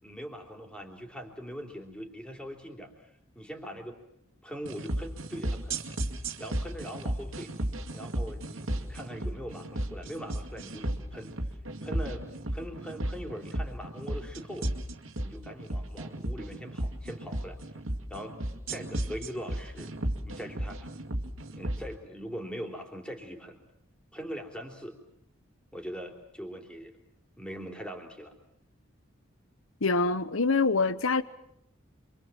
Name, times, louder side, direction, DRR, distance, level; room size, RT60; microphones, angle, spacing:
voice 1, 0.0-3.1 3.4-4.0 4.4-5.8 6.4-7.5 7.9-11.3 11.8-14.7 15.2-17.6 18.1-18.4 18.7-19.9 20.2-20.9 21.5-23.6 24.1-25.0 25.7-26.9 27.4-28.3, equal, 5° left, 3.5 m, -41 dB
sound 1, 4.7-21.8, right 1 dB, 80° right, 2.4 m, -34 dB
voice 2, 29.8-31.2, left 3 dB, 85° left, 1.1 m, -25 dB
27.5 x 24.5 x 7.5 m
head